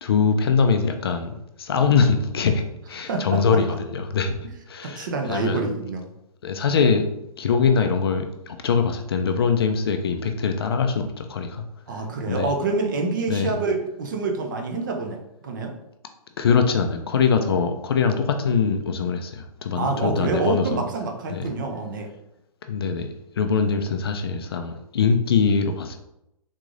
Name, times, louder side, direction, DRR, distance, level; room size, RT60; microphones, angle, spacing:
voice 1, 0.0-5.6 6.4-7.1 7.4-11.6 11.9-12.5 13.3-13.5 16.4-20.8 21.3-21.5 22.7-23.1 23.4-26.0, left 5 dB, 40° left, 6 dB, 0.4 m, -23 dB
voice 2, 3.1-3.4 4.8-6.1 11.9-15.7 19.7-22.1, right 3 dB, 35° right, 3 dB, 0.4 m, -27 dB
3.6 x 3.1 x 2.5 m, 0.82 s
hypercardioid pair, 160°, 19 cm